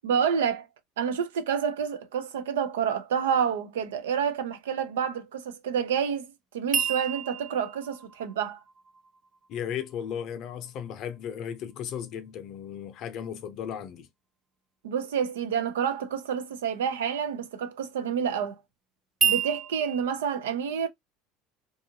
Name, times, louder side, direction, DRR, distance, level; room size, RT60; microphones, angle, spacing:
voice 1, 0.0-0.7 1.0-8.6 14.8-18.6 19.2-20.9, right 7 dB, 85° right, 0.5 m, -28 dB
sound 1, 6.7-9.8 19.2-20.0, right 7 dB, 35° right, 0.5 m, -30 dB
voice 2, 9.5-14.1, left 9 dB, 55° left, 0.6 m, -35 dB
2.6 x 2.4 x 2.7 m
hypercardioid pair, 85°, 0 cm